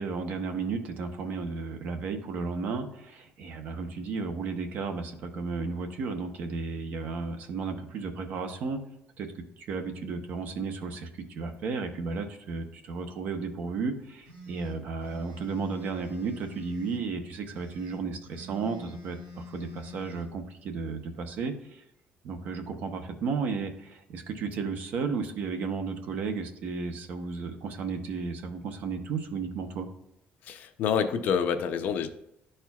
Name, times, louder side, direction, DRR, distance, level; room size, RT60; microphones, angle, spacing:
voice 1, 0.0-8.8 9.2-9.3 9.6-21.8 22.2-29.9, right 4 dB, 55° right, 7 dB, 0.8 m, -33 dB
sound 1, 14.2-17.0 17.5-20.3, left 3 dB, 70° right, 2.5 m, -46 dB
voice 2, 30.4-32.1, left 7 dB, 55° left, 8 dB, 0.6 m, -27 dB
11.5 x 4.4 x 2.3 m, 0.81 s
cardioid pair, 170°, 4 cm